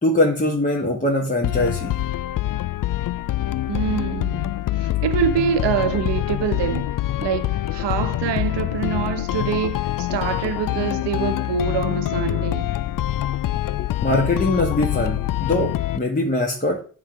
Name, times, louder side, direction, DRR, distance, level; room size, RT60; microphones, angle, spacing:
voice 1, 0.0-2.0 14.0-16.8, left 1 dB, 20° left, 1.7 m, -22 dB
sound 1, 1.4-16.0, left 14 dB, 50° left, 0.4 m, -25 dB
voice 2, 3.7-6.9 7.2-12.7, right 8 dB, 70° right, 1.0 m, -25 dB
6.9 x 4.1 x 4.7 m
supercardioid pair, 45°, 44 cm